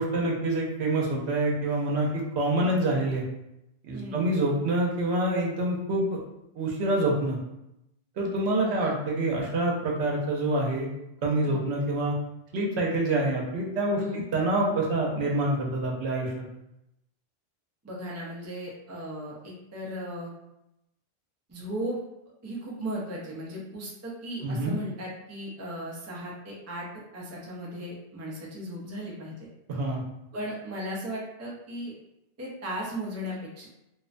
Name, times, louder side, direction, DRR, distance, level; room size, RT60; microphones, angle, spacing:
voice 1, 0.0-3.2 3.8-6.2 6.6-7.4 8.2-10.9 11.2-12.1 12.5-16.3 24.4-24.8 29.7-30.0, right 2 dB, 85° right, -1 dB, 0.9 m, -26 dB
voice 2, 3.9-4.3 8.6-9.0 11.5-11.6 14.0-14.2 17.8-20.3 21.5-22.0 22.4-26.8 27.1-29.5 30.3-31.9 32.4-33.7, equal, 25° right, -4 dB, 0.3 m, -36 dB
2.4 x 2.1 x 2.4 m, 0.86 s
omnidirectional pair, 1.1 m